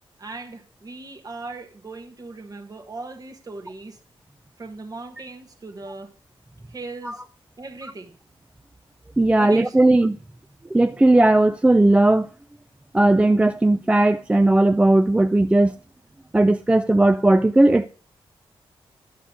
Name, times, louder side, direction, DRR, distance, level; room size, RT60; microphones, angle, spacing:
voice 1, 0.2-4.0 4.6-6.1 6.7-7.2 7.6-8.2 9.4-9.9, right 3 dB, 40° right, 1.4 m, -38 dB
voice 2, 9.2-10.2 10.7-12.3 12.9-15.7 16.3-17.9, right 2 dB, 10° right, 0.3 m, -17 dB
10.0 x 6.5 x 3.7 m
cardioid pair, 85°, 10 cm